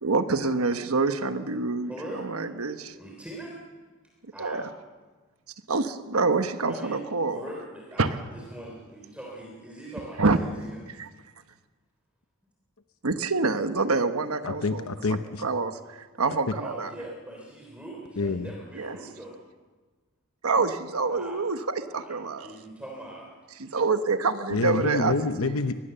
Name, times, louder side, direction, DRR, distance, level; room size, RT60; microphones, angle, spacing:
voice 1, 0.0-2.9 4.4-4.7 5.7-7.4 8.0-8.1 10.2-10.4 11.0-11.1 13.0-14.8 15.4-16.9 18.7-19.0 20.4-22.5 23.6-25.1 25.4-25.5, right 3 dB, 80° right, 9 dB, 1.2 m, -26 dB
voice 2, 1.9-2.3 3.0-3.6 4.3-4.6 6.7-7.0 7.3-10.8 16.5-19.4 21.1-21.4 21.9-23.4, right 1 dB, 5° right, -1 dB, 3.4 m, -41 dB
voice 3, 14.4-15.5 16.5-16.6 18.2-18.5 24.5-25.9, left 3 dB, 75° left, 8 dB, 0.9 m, -27 dB
24.0 x 20.0 x 6.9 m, 1.4 s
head